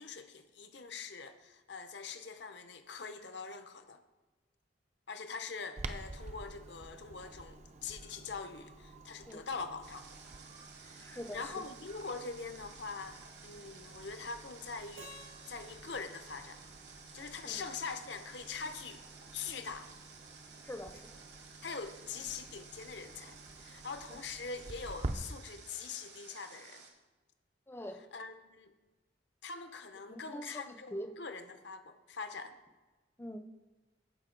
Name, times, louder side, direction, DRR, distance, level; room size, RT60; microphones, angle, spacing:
voice 1, 0.0-4.0 5.1-10.0 10.8-13.2 13.4-15.1 15.5-16.6 17.1-19.0 19.3-19.9 21.6-26.8 28.1-28.7 29.4-32.6, left 4 dB, 65° left, 8 dB, 0.8 m, -43 dB
Clock, 5.8-25.1, right 2 dB, 40° right, 0.5 m, -49 dB
Water, 9.8-26.9, right 5 dB, 65° right, 1.3 m, -55 dB
voice 2, 11.0-11.5 17.4-17.6 20.6-21.1 27.7-28.0 30.1-31.1 33.2-33.4, equal, 10° left, 6 dB, 0.6 m, -44 dB
Keyboard (musical), 15.0-17.9, equal, 85° right, 1.6 m, -57 dB
13.5 x 5.2 x 3.9 m, 1.2 s
head